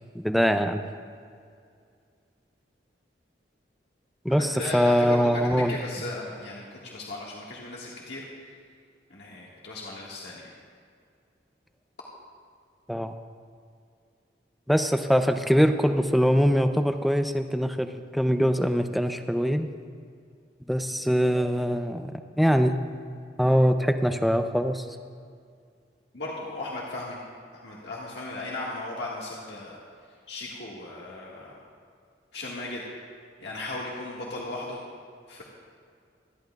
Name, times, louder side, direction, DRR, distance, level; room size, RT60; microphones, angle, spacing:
voice 1, 0.1-0.8 4.2-5.8 12.9-13.1 14.7-19.7 20.7-22.8 23.4-24.9, equal, ahead, 7 dB, 0.5 m, -23 dB
voice 2, 4.3-8.2 9.1-10.5 26.1-27.2 27.6-29.8 30.3-31.6 32.3-32.8 33.4-34.8 35.3-35.4, left 2 dB, 75° left, -5 dB, 1.7 m, -36 dB
25.0 x 11.5 x 2.3 m, 2.3 s
head